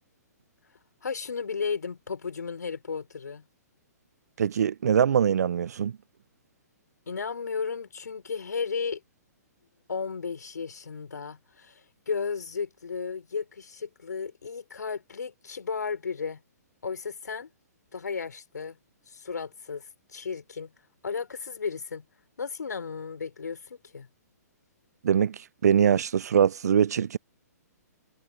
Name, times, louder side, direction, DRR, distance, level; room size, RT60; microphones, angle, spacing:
voice 1, 1.0-3.4 7.1-9.0 9.9-16.4 16.8-17.5 17.9-18.8 19.1-19.8 20.1-20.7 21.0-22.0 22.4-24.1, left 5 dB, 80° left, 4.4 m, -34 dB
voice 2, 4.4-5.9 25.0-27.2, right 8 dB, 70° right, 0.5 m, -23 dB
hypercardioid pair, 130°, 9 cm